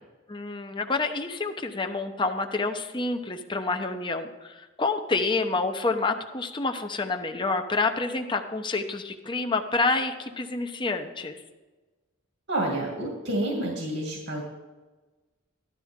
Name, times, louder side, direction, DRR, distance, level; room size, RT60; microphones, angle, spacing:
voice 1, 0.3-11.4, left 3 dB, 25° left, 5 dB, 0.8 m, -28 dB
voice 2, 12.5-14.4, right 1 dB, 70° right, -1 dB, 2.3 m, -29 dB
14.0 x 12.0 x 3.7 m, 1.2 s
head